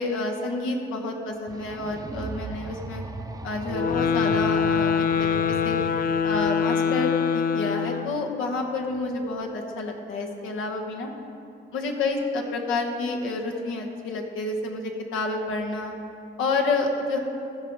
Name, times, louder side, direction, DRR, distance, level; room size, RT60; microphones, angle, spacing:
voice 1, 0.0-3.0 3.4-5.8 6.2-11.1 11.7-15.9 16.4-17.2, left 3 dB, 85° left, 1 dB, 1.2 m, -29 dB
sound 1, 1.5-6.5, right 3 dB, 20° right, 0.6 m, -37 dB
sound 2, 3.7-8.3, left 6 dB, 50° left, 0.4 m, -24 dB
15.0 x 5.0 x 4.7 m, 2.7 s
cardioid pair, 90°, 20 cm